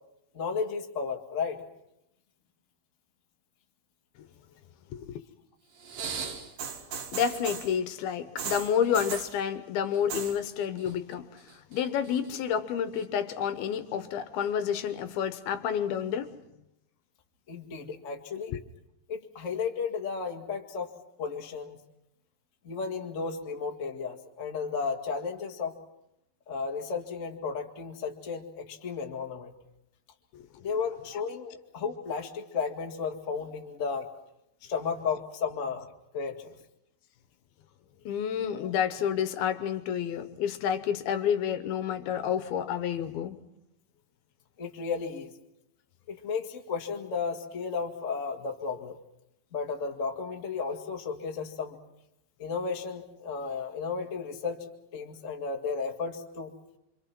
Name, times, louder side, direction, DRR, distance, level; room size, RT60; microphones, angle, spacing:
voice 1, 0.3-1.6 17.5-18.5 19.1-20.9 21.2-21.8 22.6-25.7 26.5-29.5 30.6-34.1 34.6-35.9 36.1-36.5 38.5-38.7 44.6-45.3 46.1-49.0 49.5-51.8 52.4-54.6 54.9-56.5, left 5 dB, 35° left, 3 dB, 1.3 m, -34 dB
sound 1, 5.8-7.8 8.4-9.4 9.9-10.4 10.6-11.1 11.5-12.3 13.0-13.1, right 6 dB, 60° right, 3.5 m, -37 dB
voice 2, 7.1-11.3 11.7-16.3 18.5-18.6 30.3-30.4 38.1-43.4, left 8 dB, 75° left, 11 dB, 2.8 m, -29 dB
27.0 x 25.5 x 6.0 m, 0.83 s
omnidirectional pair, 4.6 m